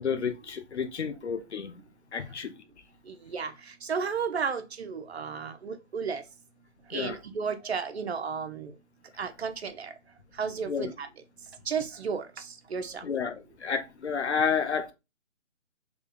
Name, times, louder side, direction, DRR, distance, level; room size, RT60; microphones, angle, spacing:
voice 1, 0.0-1.7 2.1-2.6 6.9-7.2 10.6-10.9 13.0-14.9, left 6 dB, 65° left, 0.7 m, -30 dB
voice 2, 3.8-6.2 6.9-8.7 9.2-9.9 10.4-11.1 11.7-12.2 12.7-13.0, right 6 dB, 60° right, 0.6 m, -32 dB
3.5 x 2.2 x 3.6 m
hypercardioid pair, 175°, 37 cm